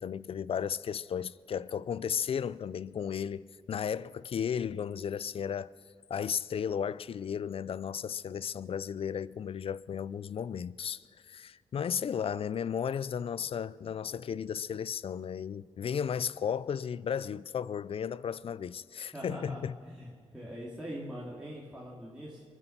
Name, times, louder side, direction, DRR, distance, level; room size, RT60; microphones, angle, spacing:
voice 1, 0.0-5.7 6.1-19.7, left 8 dB, 55° left, 0.4 m, -34 dB
voice 2, 19.1-22.4, equal, 5° right, 3.0 m, -43 dB
22.5 x 9.9 x 5.9 m
cardioid pair, 60°, 12 cm